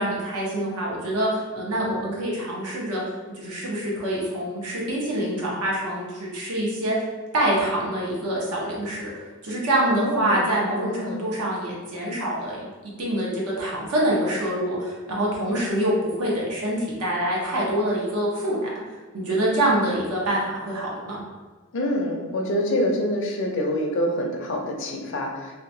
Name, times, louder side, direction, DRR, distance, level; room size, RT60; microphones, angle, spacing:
voice 1, 0.0-3.0 3.4-7.0 7.3-9.0 9.4-12.7 13.0-18.7 19.1-21.2, right 1 dB, 85° right, -4 dB, 0.8 m, -25 dB
voice 2, 9.9-10.5 10.9-11.3 21.7-25.5, left 1 dB, 55° left, 1 dB, 0.4 m, -26 dB
2.8 x 2.2 x 2.6 m, 1.4 s
head